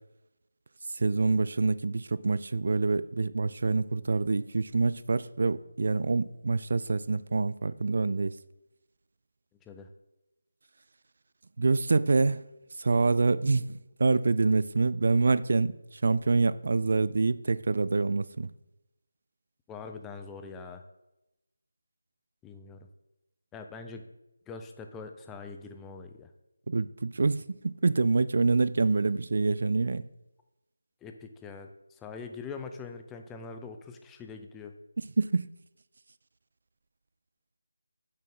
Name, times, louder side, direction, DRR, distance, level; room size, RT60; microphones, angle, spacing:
voice 1, 0.9-8.4 11.6-12.4 12.8-15.8 16.0-18.5 26.7-30.1 35.2-35.5, right 3 dB, 50° right, 0.4 m, -26 dB
voice 2, 19.7-20.8 22.4-22.9 23.5-24.0 24.5-26.3 31.0-34.8, left 4 dB, 10° left, 0.5 m, -43 dB
8.4 x 6.3 x 3.6 m
figure-of-eight pair, 160°, 0 cm